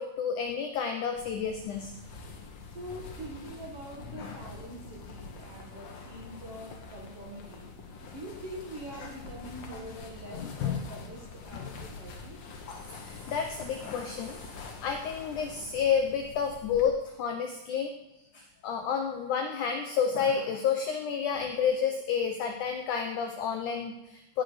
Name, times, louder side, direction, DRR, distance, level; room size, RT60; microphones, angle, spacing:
voice 1, 0.0-1.9 4.2-4.4 9.0-9.1 9.7-9.8 10.3-10.8 11.5-11.7 12.7-17.9 18.3-24.4, left 7 dB, 80° left, 4 dB, 1.8 m, -30 dB
sound 1, 1.2-16.8, left 4 dB, 55° left, 1.9 m, -45 dB
voice 2, 2.7-7.7 8.1-12.4, right 1 dB, 50° right, -2 dB, 2.1 m, -44 dB
17.5 x 8.5 x 5.0 m, 0.93 s
omnidirectional pair, 4.7 m